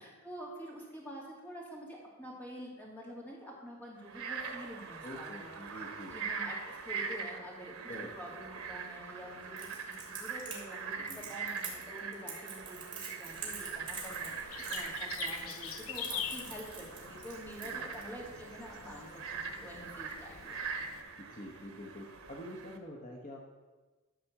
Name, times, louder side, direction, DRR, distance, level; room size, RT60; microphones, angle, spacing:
voice 1, 0.0-20.6, equal, 10° left, -3 dB, 2.4 m, -47 dB
Frog, 4.0-22.8, right 5 dB, 85° right, 1.1 m, -42 dB
voice 2, 5.0-6.1 7.9-8.1 11.0-11.3 17.7-17.9 21.2-23.5, left 1 dB, 40° left, -1 dB, 1.1 m, -46 dB
Crackle, 9.6-18.0, right 5 dB, 25° right, 2.5 m, -45 dB
sound 1, 13.3-21.0, left 8 dB, 75° left, 0.6 m, -45 dB
12.5 x 4.3 x 7.1 m, 1.3 s
head